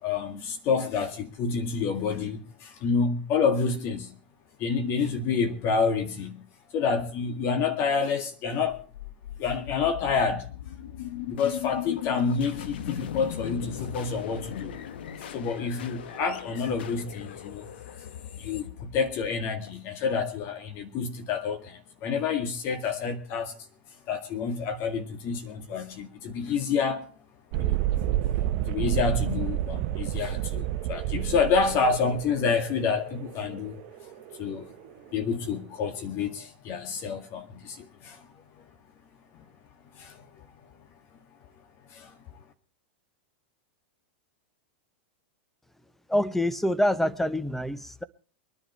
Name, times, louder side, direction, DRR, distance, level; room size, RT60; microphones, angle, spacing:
voice 1, 0.0-4.1 4.6-6.4 6.7-8.8 9.4-10.5 11.3-14.7 15.3-17.7 18.4-23.5 24.1-27.0 27.6-27.8 28.7-33.8 34.4-34.7 35.1-38.2 40.0-40.1 42.0-42.1, left 5 dB, 45° left, 1.9 m, -28 dB
sound 1, 8.7-19.7, left 11 dB, 70° left, 1.3 m, -38 dB
Thunderstorm, 27.5-35.0, right 13 dB, 50° right, 0.9 m, -30 dB
voice 2, 46.1-48.0, left 1 dB, 5° left, 0.9 m, -26 dB
22.5 x 10.5 x 4.5 m
hypercardioid pair, 110°, 6 cm